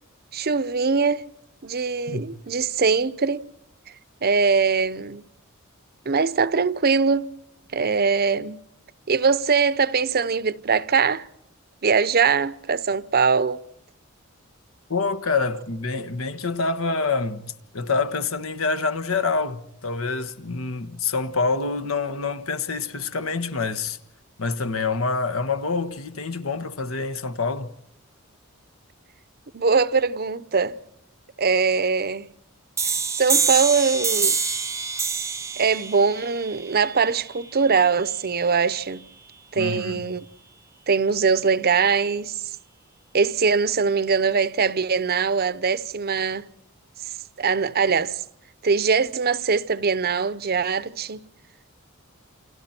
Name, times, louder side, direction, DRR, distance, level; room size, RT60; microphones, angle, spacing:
voice 1, 0.3-1.3 1.6-3.5 4.2-5.2 6.1-7.3 7.7-8.6 9.1-11.3 11.8-13.6 29.5-30.8 31.4-32.3 33.2-34.4 35.6-39.0 39.5-40.3 40.9-42.3 43.1-46.5 47.4-48.2 48.6-51.2, right 5 dB, 50° right, 0.8 m, -22 dB
voice 2, 14.9-17.4 17.7-24.0 24.4-27.7 39.5-40.0, left 4 dB, 80° left, 1.4 m, -26 dB
sound 1, 32.8-38.2, right 5 dB, 15° right, 0.8 m, -26 dB
29.0 x 29.0 x 4.5 m
head